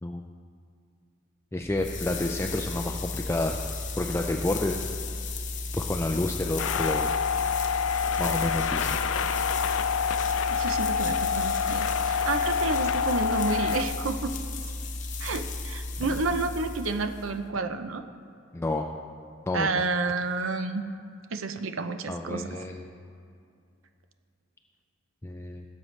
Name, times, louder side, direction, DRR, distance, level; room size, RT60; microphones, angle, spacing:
voice 1, 1.5-3.6 4.0-4.8 5.7-7.1 8.2-9.0 18.5-18.9 19.5-19.8 22.1-22.8 25.2-25.7, left 2 dB, 15° left, 2 dB, 0.4 m, -29 dB
sound 1, 1.6-17.4, left 3 dB, 40° left, 0.7 m, -34 dB
sound 2, 6.6-13.8, left 6 dB, 85° left, 0.4 m, -27 dB
voice 2, 10.5-14.3 15.2-18.0 19.5-20.9 21.3-22.6, right 3 dB, 85° right, 8 dB, 0.6 m, -30 dB
17.5 x 7.5 x 3.2 m, 2.4 s
head